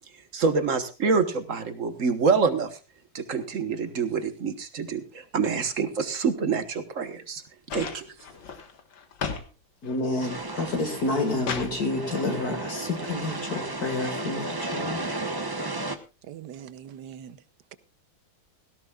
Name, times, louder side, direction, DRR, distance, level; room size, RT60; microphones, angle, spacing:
voice 1, 0.3-2.7 3.1-7.4 7.7-8.1, right 5 dB, 45° right, 1.4 m, -26 dB
sound 1, 7.7-9.5 9.8-10.4 10.9-11.8 13.0-13.1, left 6 dB, 70° left, 2.2 m, -35 dB
voice 2, 9.8-15.0, left 2 dB, 50° left, 2.2 m, -29 dB
sound 2, 10.2-16.0, right 2 dB, 30° right, 0.4 m, -34 dB
voice 3, 16.2-17.4, right 9 dB, 65° right, 1.4 m, -42 dB
17.0 x 17.0 x 2.4 m
omnidirectional pair, 2.1 m